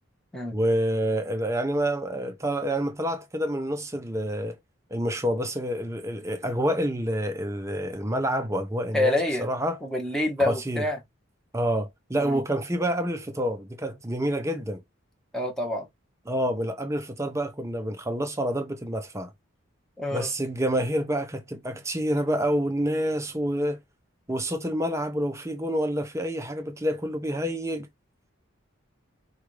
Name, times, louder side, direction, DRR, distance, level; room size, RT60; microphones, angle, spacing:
voice 1, 0.5-4.6 4.9-9.8 10.4-10.9 11.5-14.8 16.3-19.3 20.1-23.8 24.3-27.9, equal, 15° right, 0.6 m, -28 dB
voice 2, 8.9-9.5 9.8-11.0 12.2-12.4 15.3-15.9 20.0-20.3, left 1 dB, ahead, 0.9 m, -27 dB
4.8 x 2.4 x 3.1 m
head